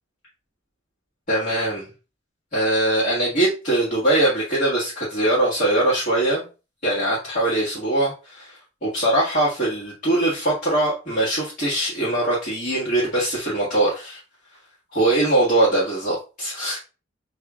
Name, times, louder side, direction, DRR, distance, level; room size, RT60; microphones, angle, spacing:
voice 1, 1.3-1.9 2.5-6.4 6.8-14.2 14.9-16.8, right 1 dB, 40° left, -8 dB, 1.7 m, -22 dB
6.7 x 2.9 x 2.3 m, 0.32 s
head